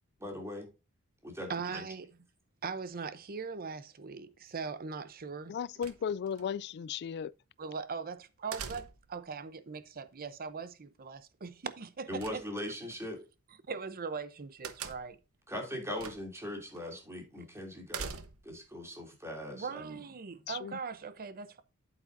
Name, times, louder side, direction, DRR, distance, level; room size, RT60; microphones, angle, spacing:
voice 1, 0.2-0.7 1.2-1.9 12.1-13.2 15.5-18.1 18.4-20.0, left 1 dB, 15° right, 2.8 m, -40 dB
voice 2, 1.5-2.1 2.6-5.6 7.6-12.4 13.7-15.2 19.5-21.6, right 5 dB, 45° right, 0.7 m, -40 dB
voice 3, 5.5-7.3 20.5-20.8, left 7 dB, 50° left, 0.3 m, -36 dB
sound 1, 5.8-6.4 8.5-9.2 12.2-12.9 14.6-15.3 16.0-16.4 16.8-16.9 17.9-18.6, right 6 dB, 80° right, 1.1 m, -42 dB
8.6 x 8.4 x 2.6 m
head